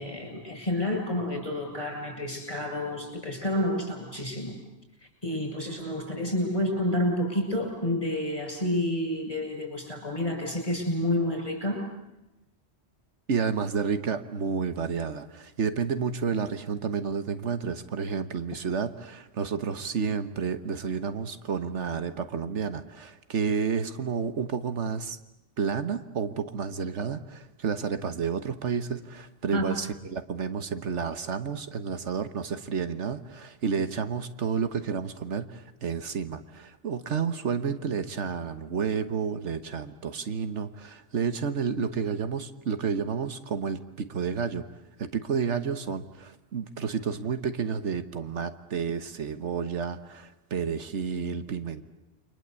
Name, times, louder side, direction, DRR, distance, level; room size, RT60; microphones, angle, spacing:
voice 1, 0.0-4.6 5.2-11.8 29.5-29.6, left 1 dB, 30° left, 2 dB, 8.1 m, -29 dB
voice 2, 13.3-25.2 25.6-44.6 45.0-51.8, right 6 dB, 80° right, 11 dB, 1.5 m, -30 dB
29.5 x 24.0 x 8.3 m, 0.94 s
omnidirectional pair, 1.2 m